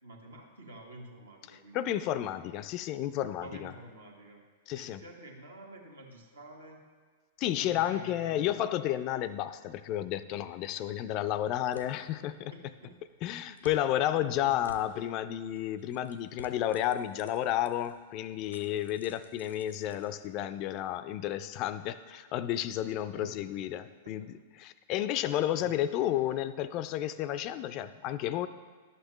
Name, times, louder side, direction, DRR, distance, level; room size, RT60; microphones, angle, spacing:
voice 1, 0.0-1.9 3.4-4.4 4.7-6.8 7.6-8.5 10.6-11.0 12.5-12.9 14.2-14.9 23.0-23.4 24.0-24.1 25.5-25.7, right 1 dB, 80° right, 0 dB, 1.3 m, -49 dB
voice 2, 1.7-3.7 4.7-5.0 7.4-12.5 13.2-28.5, left 12 dB, 40° left, 14 dB, 0.3 m, -32 dB
sound 1, 10.4-20.7, left 1 dB, 90° left, 0.7 m, -56 dB
11.0 x 6.7 x 3.1 m, 1.5 s
figure-of-eight pair, 100°, 0 cm